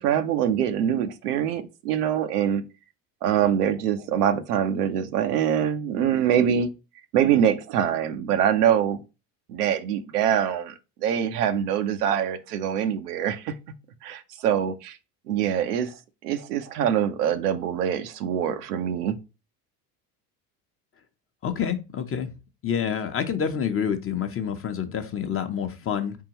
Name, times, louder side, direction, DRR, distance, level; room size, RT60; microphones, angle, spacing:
voice 1, 0.0-2.6 3.2-6.7 7.1-9.0 9.5-10.7 11.0-13.5 14.0-15.0 15.3-16.0 16.2-19.2, right 9 dB, 85° right, 0.7 m, -24 dB
voice 2, 21.4-22.3 22.6-26.2, left 8 dB, 30° left, 0.8 m, -28 dB
4.3 x 3.7 x 2.9 m
hypercardioid pair, 80°, 46 cm